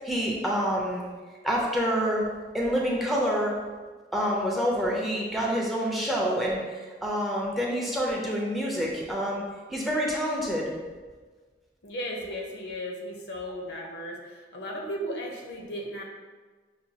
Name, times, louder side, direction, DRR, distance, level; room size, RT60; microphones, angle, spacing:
voice 1, 0.0-1.0 1.4-2.2 2.5-3.6 4.1-9.4 9.7-10.7, equal, ahead, -3 dB, 0.5 m, -27 dB
voice 2, 11.8-16.0, equal, 70° left, 0 dB, 0.7 m, -35 dB
5.7 x 2.3 x 2.7 m, 1.4 s
head